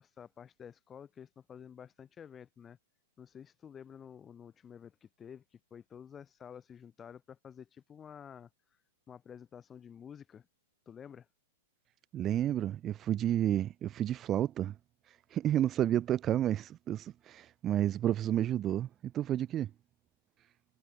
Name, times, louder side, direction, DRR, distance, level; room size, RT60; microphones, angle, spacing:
voice 1, 0.0-2.8 3.2-8.5 9.1-10.5 10.9-11.3, left 8 dB, 20° left, 2.0 m, -51 dB
voice 2, 12.1-14.8 15.1-19.7, right 11 dB, 25° right, 0.4 m, -31 dB
hypercardioid pair, 135°, 0 cm